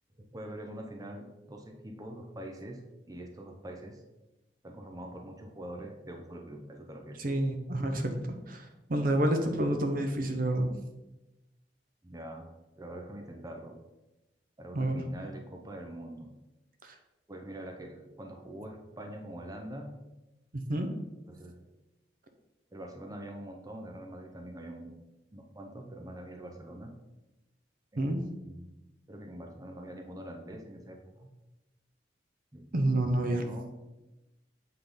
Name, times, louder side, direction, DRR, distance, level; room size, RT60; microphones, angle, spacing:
voice 1, 0.2-4.0 4.6-7.2 12.0-12.5 12.8-13.8 14.6-16.3 17.3-19.9 21.3-21.6 22.7-25.0 25.3-26.9 27.9-28.8 29.1-31.3 32.5-33.7, right 1 dB, 20° right, 2 dB, 0.7 m, -44 dB
voice 2, 7.2-8.2 8.5-10.7 14.7-15.0 16.8-16.9 20.5-20.9 28.0-28.2 32.7-33.4, right 1 dB, 55° right, 5 dB, 0.8 m, -29 dB
8.0 x 3.8 x 5.1 m, 1.0 s
head